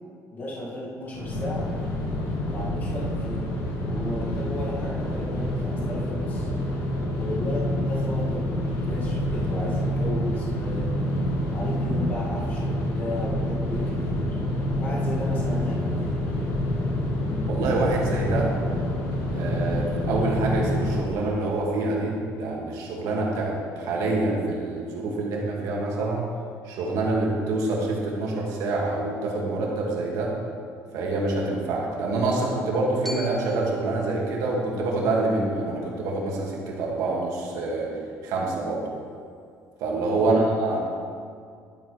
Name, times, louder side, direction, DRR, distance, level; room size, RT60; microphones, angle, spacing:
voice 1, 0.3-1.8 2.5-6.5 7.2-11.1 11.5-14.3 14.8-16.2 40.2-40.6, left 1 dB, 30° left, -6 dB, 2.2 m, -34 dB
sound 1, 1.1-21.0, left 1 dB, 80° left, 1.8 m, -27 dB
voice 2, 17.5-18.5 19.3-26.2 26.6-30.3 30.9-37.9 38.2-38.8 39.8-40.8, right 2 dB, 75° right, -3 dB, 2.1 m, -26 dB
Glockenspiel, 33.0-37.2, left 1 dB, 5° left, 0.8 m, -43 dB
12.0 x 9.1 x 3.3 m, 2.2 s
cardioid pair, 160°, 6 cm